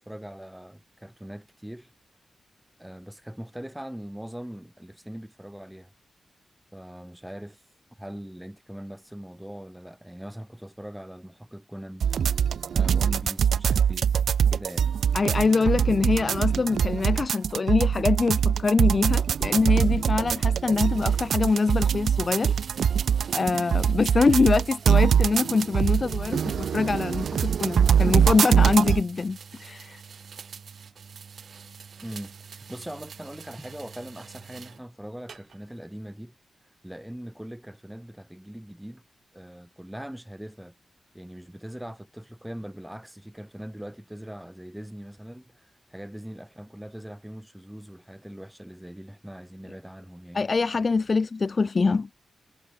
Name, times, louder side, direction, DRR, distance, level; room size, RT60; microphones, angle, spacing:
voice 1, 0.0-1.9 2.8-5.9 6.7-7.6 7.9-12.1 12.7-14.1 14.5-14.9 32.0-32.3 32.7-36.3 36.8-39.0 39.3-40.7 41.1-50.5, equal, 5° right, 6.8 m, -41 dB
sound 1, 12.0-29.0, right 8 dB, 80° right, 0.9 m, -23 dB
voice 2, 15.1-22.5 23.3-30.0 50.3-52.1, left 4 dB, 35° left, 0.8 m, -24 dB
sound 2, 20.8-34.8 35.3-35.8, right 6 dB, 60° right, 3.2 m, -46 dB
wide cardioid pair, 130°, 0 cm